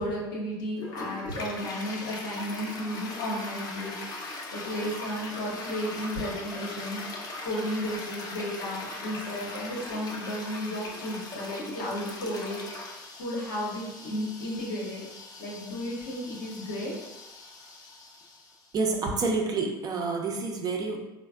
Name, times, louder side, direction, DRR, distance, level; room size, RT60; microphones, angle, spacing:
voice 1, 0.0-15.0 15.4-16.9, equal, 80° left, -3 dB, 0.9 m, -34 dB
Toilet flush, 0.8-18.7, left 2 dB, 35° left, 0.6 m, -40 dB
voice 2, 18.7-21.0, right 3 dB, 35° right, 1 dB, 0.6 m, -28 dB
3.9 x 2.1 x 2.3 m, 1.0 s
hypercardioid pair, 80°, 11 cm